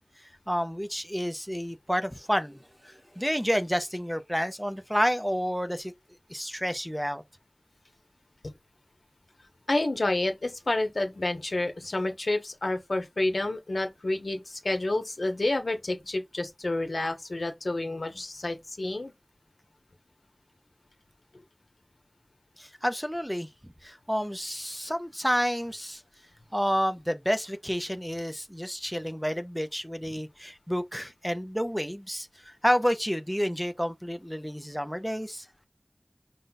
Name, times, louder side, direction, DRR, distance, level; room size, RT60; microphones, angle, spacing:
voice 1, 0.5-5.9 6.3-7.2 22.6-23.5 23.8-26.0 26.5-35.4, equal, ahead, 0.5 m, -30 dB
voice 2, 9.7-19.1, left 2 dB, 90° left, 0.9 m, -29 dB
5.2 x 2.3 x 3.9 m
wide cardioid pair, 45°, 0 cm